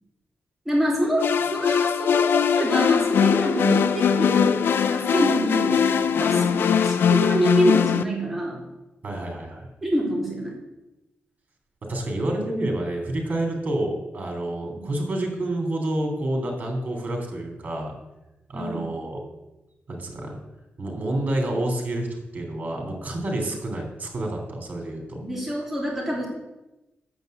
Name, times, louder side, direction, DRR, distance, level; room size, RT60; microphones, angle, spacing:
voice 1, 0.6-2.3 2.6-4.5 4.9-8.6 9.8-10.5 14.6-14.8 18.5-18.9 25.2-26.3, right 1 dB, 5° right, -3 dB, 2.9 m, -26 dB
sound 1, 1.2-8.0, left 7 dB, 80° left, 0.5 m, -21 dB
voice 2, 9.0-9.7 11.9-17.9 18.5-19.2 19.9-20.4 20.8-25.2, right 1 dB, 45° right, 2 dB, 3.2 m, -28 dB
9.4 x 7.8 x 7.9 m, 1.0 s
wide cardioid pair, 155°, 4 cm